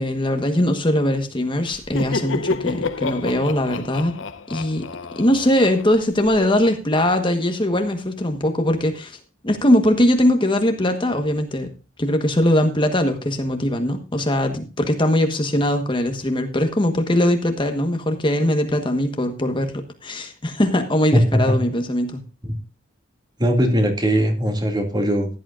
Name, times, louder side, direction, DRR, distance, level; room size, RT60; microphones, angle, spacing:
voice 1, 0.0-4.2 4.5-4.9 5.1-11.7 12.0-22.2, left 1 dB, 25° left, 6 dB, 1.3 m, -21 dB
Laughter, 1.7-6.4, left 3 dB, 70° left, 0.8 m, -29 dB
voice 2, 21.1-21.5 22.4-22.6 23.4-25.4, equal, 20° right, 4 dB, 2.3 m, -19 dB
16.0 x 11.0 x 2.5 m, 0.32 s
head